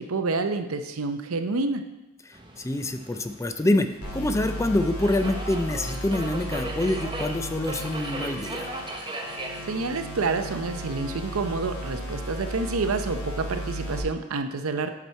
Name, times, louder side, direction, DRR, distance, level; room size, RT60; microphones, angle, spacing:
voice 1, 0.0-1.8 9.6-14.9, right 3 dB, 80° right, 8 dB, 0.7 m, -28 dB
voice 2, 2.3-8.7, left 1 dB, 15° left, 8 dB, 0.3 m, -26 dB
Subway metro underground, 2.3-12.9, right 1 dB, 20° right, 0.8 m, -39 dB
sound 1, 4.0-14.0, right 1 dB, 85° left, 2.9 m, -35 dB
8.3 x 6.1 x 4.4 m, 1.0 s
head